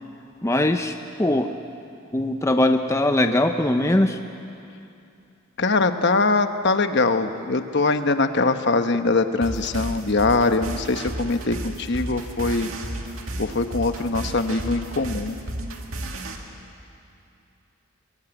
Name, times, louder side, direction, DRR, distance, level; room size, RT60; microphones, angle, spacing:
voice 1, 0.4-1.5 2.1-4.2, left 1 dB, 15° left, 6 dB, 0.7 m, -21 dB
voice 2, 5.6-12.7 13.4-15.4, left 3 dB, 50° left, 8 dB, 1.1 m, -22 dB
sound 1, 9.4-16.4, right 1 dB, 65° right, 2.3 m, -33 dB
23.0 x 22.5 x 9.0 m, 2.7 s
head